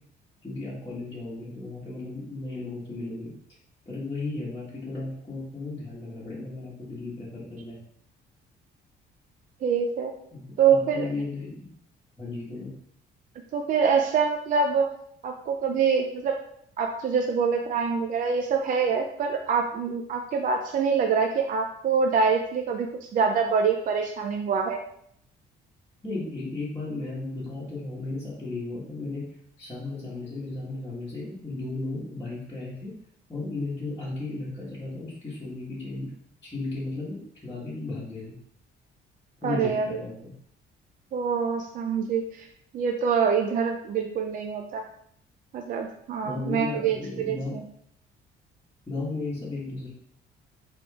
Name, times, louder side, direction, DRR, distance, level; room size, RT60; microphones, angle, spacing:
voice 1, 0.4-3.3 3.8-7.8 10.3-11.7 12.2-12.7 26.0-29.2 29.6-32.9 33.3-36.1 36.4-38.4 39.4-40.3 46.2-47.6 48.9-49.9, left 2 dB, 15° left, -11 dB, 1.2 m, -35 dB
voice 2, 9.6-10.1 10.6-11.0 13.5-14.9 15.2-16.4 16.8-22.9 23.1-24.8 39.4-39.9 41.1-42.5 42.7-44.8 45.5-47.6, right 6 dB, 45° right, 3 dB, 0.4 m, -25 dB
5.0 x 3.8 x 2.4 m, 0.67 s
cardioid pair, 145°, 19 cm